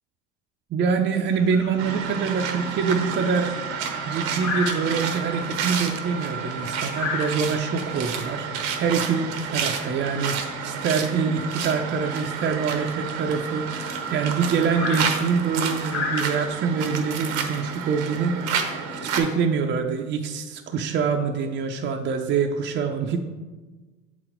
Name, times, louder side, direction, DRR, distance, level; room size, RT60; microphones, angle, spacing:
voice 1, 0.7-3.5 4.1-8.5 8.7-18.7 19.0-23.2, right 5 dB, 35° right, 3 dB, 0.6 m, -25 dB
sound 1, 1.3-16.6, left 4 dB, 50° left, 1.2 m, -36 dB
sound 2, 1.8-19.2, right 6 dB, 85° right, 1.0 m, -30 dB
7.4 x 4.1 x 4.5 m, 1.3 s
supercardioid pair, 100°, 32 cm